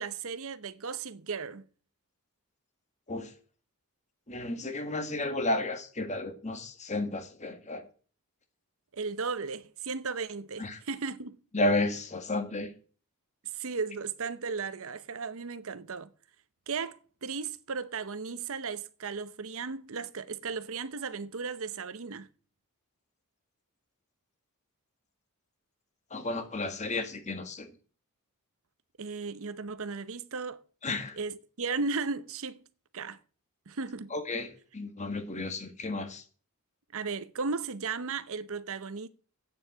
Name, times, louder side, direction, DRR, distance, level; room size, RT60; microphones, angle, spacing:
voice 1, 0.0-1.6 8.9-11.4 13.5-16.1 16.7-22.3 29.0-30.6 31.1-32.6 32.9-33.2 33.7-34.1 36.9-39.1, right 4 dB, 65° right, 0.8 m, -35 dB
voice 2, 4.3-7.9 10.6-10.8 11.5-12.7 26.1-27.7 30.8-31.2 34.1-36.2, left 2 dB, 30° left, 1.7 m, -32 dB
8.9 x 7.3 x 8.8 m
head